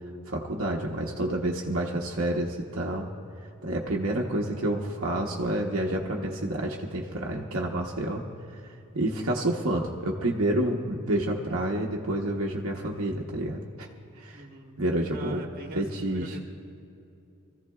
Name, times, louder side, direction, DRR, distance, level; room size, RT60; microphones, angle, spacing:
voice 1, 0.3-3.1 3.6-8.2 8.9-13.9 14.2-14.4 14.8-15.4 15.7-16.4, right 1 dB, 70° right, -1 dB, 1.0 m, -29 dB
voice 2, 14.3-14.7 15.0-15.8 16.1-16.4, right 2 dB, 45° right, 2 dB, 1.3 m, -41 dB
25.5 x 15.0 x 2.3 m, 2.6 s
head